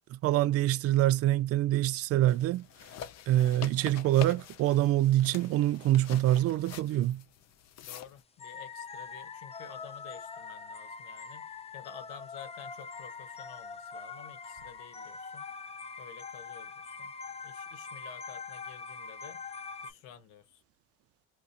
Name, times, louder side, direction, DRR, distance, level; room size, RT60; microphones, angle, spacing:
voice 1, 0.1-2.7 3.3-7.2, right 14 dB, 45° right, 0.4 m, -25 dB
sound 1, 2.3-8.2, left 9 dB, 50° left, 0.7 m, -46 dB
voice 2, 7.8-15.5 16.0-17.1 17.4-19.4 19.8-20.6, left 9 dB, 80° left, 1.2 m, -51 dB
sound 2, 8.4-19.9, left 5 dB, 20° left, 0.5 m, -43 dB
2.9 x 2.5 x 2.4 m
supercardioid pair, 85°, 34 cm